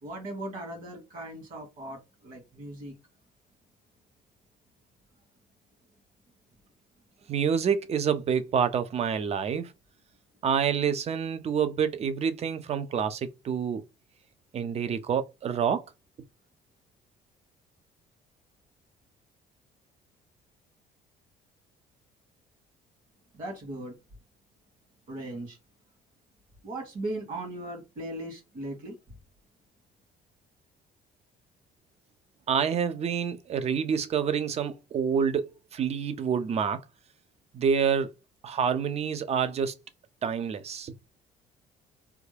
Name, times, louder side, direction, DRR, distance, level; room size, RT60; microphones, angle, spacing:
voice 1, 0.0-2.9 23.3-24.0 25.1-25.6 26.6-29.0, right 1 dB, 55° right, 2.0 m, -38 dB
voice 2, 7.3-9.7 10.4-13.8 14.5-15.8 32.5-35.4 35.7-36.8 37.5-38.1 38.4-39.7 40.2-40.9, right 7 dB, 40° right, 0.5 m, -27 dB
3.4 x 2.2 x 3.2 m
cardioid pair, 110°, 17 cm